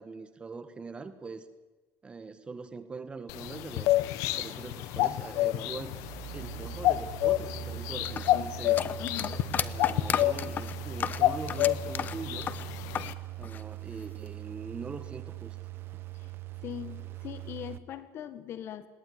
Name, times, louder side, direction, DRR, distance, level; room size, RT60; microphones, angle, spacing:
voice 1, 0.0-1.5 2.0-3.9 4.4-6.0 6.3-8.8 9.6-12.5 13.4-15.6 15.9-16.0, right 4 dB, 20° right, 10 dB, 1.7 m, -42 dB
sound 1, 3.3-13.1, left 15 dB, 85° left, 1.1 m, -30 dB
sound 2, 3.7-17.8, right 12 dB, 45° right, 1.0 m, -42 dB
sound 3, 8.0-13.2 13.4-14.3, left 8 dB, 35° left, 0.9 m, -34 dB
voice 2, 8.3-9.4 16.1-16.3 16.6-18.9, left 11 dB, 50° left, 13 dB, 1.6 m, -41 dB
21.0 x 18.0 x 9.6 m, 1.2 s
cardioid pair, 145°, 5 cm